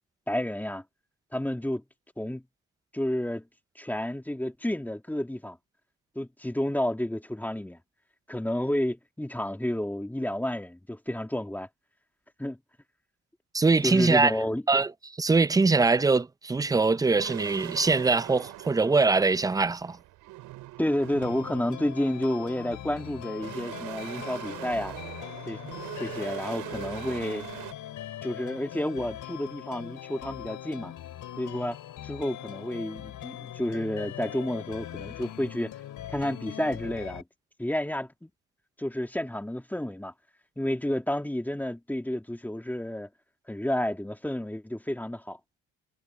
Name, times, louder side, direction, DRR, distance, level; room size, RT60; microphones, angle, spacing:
voice 1, 0.3-0.8 1.3-1.8 2.2-2.4 2.9-3.4 3.8-5.6 6.2-7.8 8.3-11.7 12.4-12.6 13.8-14.6 20.8-25.0 25.5-25.6 26.0-27.5 28.2-30.9 31.4-31.8 32.0-35.7 36.1-37.2 37.6-38.3 38.8-40.1 40.6-43.1 43.5-45.4, left 1 dB, 5° left, 1.9 m, -30 dB
voice 2, 13.5-14.3 14.7-14.9 15.2-20.0, right 3 dB, 10° right, 0.5 m, -22 dB
sound 1, 17.2-27.7, right 17 dB, 85° right, 6.7 m, -42 dB
sound 2, 21.2-37.2, left 12 dB, 70° left, 6.2 m, -41 dB
cardioid pair, 90°, 32 cm